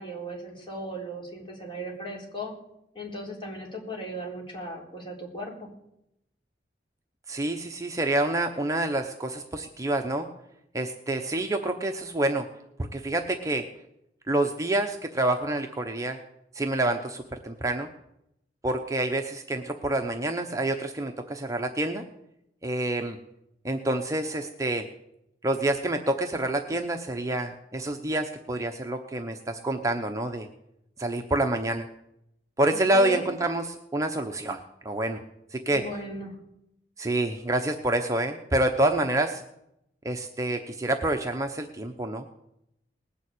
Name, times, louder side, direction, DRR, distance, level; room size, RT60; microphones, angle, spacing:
voice 1, 0.0-2.5 2.9-5.7 32.7-33.2 35.7-36.3, right 1 dB, 30° left, -2 dB, 4.0 m, -37 dB
voice 2, 7.3-10.3 10.7-12.5 12.8-13.7 14.3-16.2 16.5-17.9 18.6-22.0 22.6-23.2 23.6-24.9 25.4-30.5 31.0-31.9 32.6-34.6 34.8-35.2 35.5-35.9 37.0-39.4 40.0-42.3, right 1 dB, 20° right, 4 dB, 0.8 m, -27 dB
19.5 x 7.2 x 8.3 m, 0.81 s
head